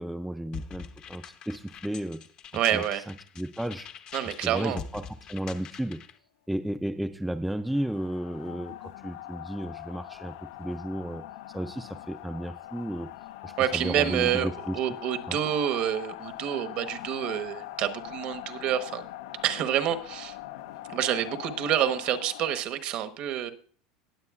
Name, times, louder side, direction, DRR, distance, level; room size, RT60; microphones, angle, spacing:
voice 1, 0.0-2.2 2.7-3.9 4.2-6.0 6.5-11.2 11.5-13.1 13.4-14.8 15.3-15.4, right 1 dB, ahead, 8 dB, 0.4 m, -33 dB
sound 1, 0.5-6.2, left 7 dB, 35° left, 0.7 m, -44 dB
voice 2, 2.5-3.0 4.1-4.8 13.6-14.5 14.7-19.0 19.4-20.4 20.9-23.5, right 10 dB, 45° right, 9 dB, 1.0 m, -28 dB
sound 2, 7.7-22.6, left 15 dB, 85° left, 0.7 m, -42 dB
19.5 x 7.7 x 2.4 m, 0.43 s
supercardioid pair, 150°, 2 cm